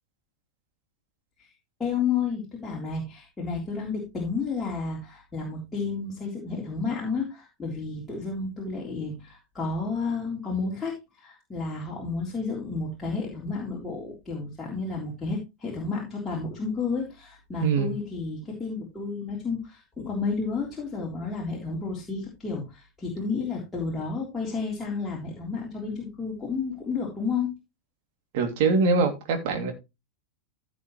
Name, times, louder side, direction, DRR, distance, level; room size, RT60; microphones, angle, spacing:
voice 1, 1.8-27.5, left 4 dB, 10° left, 3.6 m, -31 dB
voice 2, 17.6-17.9 28.3-29.7, right 4 dB, 50° right, 2.8 m, -23 dB
15.5 x 5.9 x 3.2 m
figure-of-eight pair, 90°, 0 cm